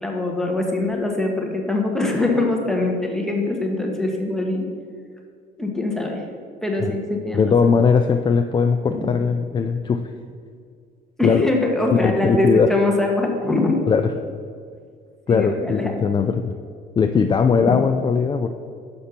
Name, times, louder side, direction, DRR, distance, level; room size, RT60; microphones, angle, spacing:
voice 1, 0.0-4.7 5.6-6.2 6.6-7.7 8.9-9.1 11.2-13.8 15.3-15.9 17.7-17.8, left 2 dB, 5° left, 0 dB, 1.3 m, -23 dB
voice 2, 7.3-10.1 11.2-11.5 11.9-12.8 13.9-14.1 15.3-16.5 17.0-18.5, left 5 dB, 25° left, 6 dB, 0.4 m, -19 dB
6.8 x 5.4 x 5.8 m, 2.2 s
cardioid pair, 110°, 17 cm